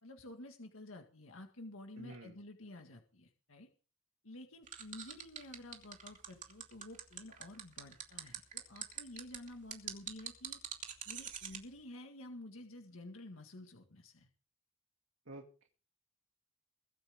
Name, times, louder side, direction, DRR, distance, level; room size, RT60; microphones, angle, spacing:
voice 1, 0.0-3.7 4.2-10.6 11.1-14.3, left 1 dB, 85° left, 4 dB, 1.9 m, -51 dB
voice 2, 2.0-2.3 15.3-15.7, right 1 dB, 75° right, 1 dB, 2.2 m, -50 dB
sound 1, 4.7-11.6, right 8 dB, 40° right, 2.7 m, -44 dB
23.0 x 9.0 x 3.6 m, 0.37 s
head